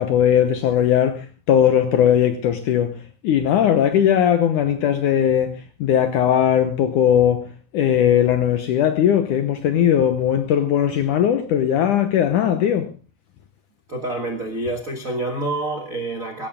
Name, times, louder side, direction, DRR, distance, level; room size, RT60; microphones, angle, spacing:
voice 1, 0.0-3.0 3.2-7.5 7.7-12.9, left 9 dB, 70° left, 2.0 m, -18 dB
voice 2, 13.9-16.5, right 2 dB, 60° right, 0.8 m, -27 dB
17.5 x 14.0 x 3.7 m
omnidirectional pair, 4.7 m